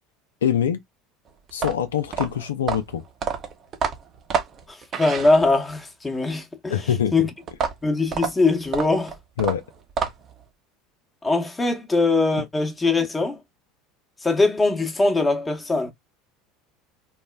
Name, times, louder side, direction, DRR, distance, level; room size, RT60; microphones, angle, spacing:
voice 1, 0.4-0.8 1.5-3.0 6.7-7.3 9.4-9.6, left 9 dB, 85° left, 0.3 m, -24 dB
sound 1, 1.5-5.8 7.5-10.4, right 6 dB, 40° right, 0.7 m, -28 dB
voice 2, 4.7-7.3 7.8-9.2 11.2-13.4 14.2-15.9, left 3 dB, 15° left, 0.8 m, -22 dB
3.1 x 2.0 x 2.2 m
hypercardioid pair, 75°, 0 cm